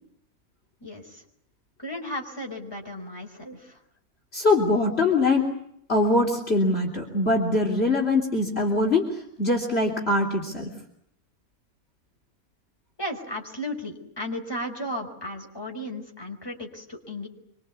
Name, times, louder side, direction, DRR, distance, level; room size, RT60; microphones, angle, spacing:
voice 1, 0.8-1.2 1.8-3.8 13.0-17.3, left 1 dB, 15° left, 2 dB, 5.1 m, -35 dB
voice 2, 4.3-5.5 5.9-10.7, left 2 dB, 45° left, 2 dB, 3.7 m, -23 dB
26.0 x 25.0 x 8.4 m, 0.73 s
omnidirectional pair, 1.5 m